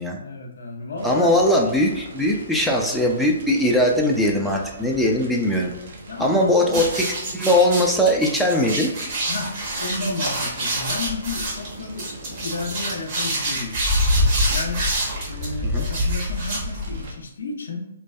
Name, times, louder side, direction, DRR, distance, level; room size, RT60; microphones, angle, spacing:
voice 1, 0.0-1.4 6.1-6.8 9.3-13.8 14.5-14.9 15.3-17.9, left 3 dB, 70° left, 2 dB, 0.4 m, -32 dB
voice 2, 1.0-5.7 6.2-7.0 7.3-8.9 15.6-15.8, left 1 dB, ahead, -2 dB, 0.3 m, -20 dB
Fire, 1.0-17.1, right 2 dB, 55° right, 0.5 m, -42 dB
sound 1, 6.7-17.1, equal, 40° right, 1.0 m, -25 dB
2.5 x 2.2 x 2.2 m, 0.84 s
figure-of-eight pair, 130°, 0 cm